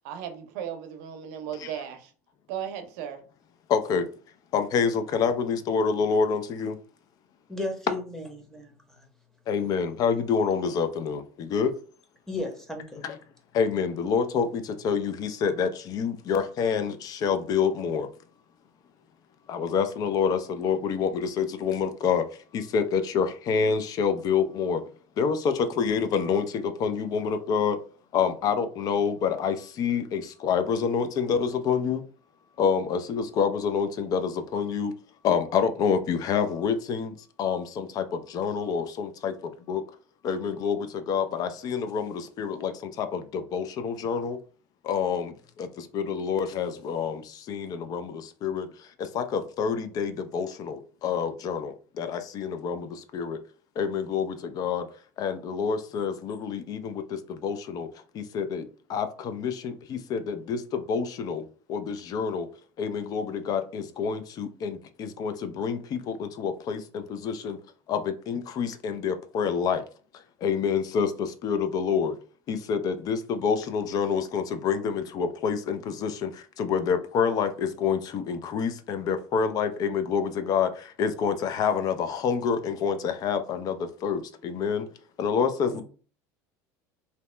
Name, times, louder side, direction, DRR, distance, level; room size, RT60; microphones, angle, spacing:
voice 1, 0.0-2.1 2.5-3.2, right 9 dB, 75° right, 0.6 m, -36 dB
voice 2, 3.7-4.1 4.5-6.8 9.5-11.7 13.0-13.2 13.5-18.1 19.5-22.2 22.5-24.8 25.2-27.8 28.1-32.0 32.6-34.9 35.2-39.8 40.2-44.4 44.8-53.4 53.8-54.9 55.2-57.9 58.1-62.5 62.8-67.6 67.9-69.8 70.4-72.1 72.5-84.9 85.2-85.8, left 6 dB, 50° left, 0.4 m, -27 dB
voice 3, 7.5-8.7 12.3-13.0 85.7-85.8, left 2 dB, 5° left, 0.8 m, -34 dB
2.8 x 2.1 x 3.2 m
supercardioid pair, 95°, 8 cm